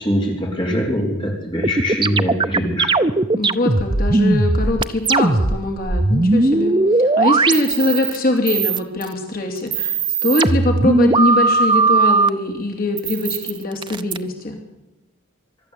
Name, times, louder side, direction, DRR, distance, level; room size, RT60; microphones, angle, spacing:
voice 1, 0.0-2.9, equal, 25° left, 0 dB, 4.0 m, -22 dB
sound 1, 1.6-8.2 8.5-9.1 9.6-12.3 13.0-14.2, right 3 dB, 25° right, 0.7 m, -18 dB
voice 2, 3.3-14.6, left 2 dB, 45° left, 2 dB, 2.9 m, -22 dB
24.0 x 13.0 x 8.4 m, 1.0 s
head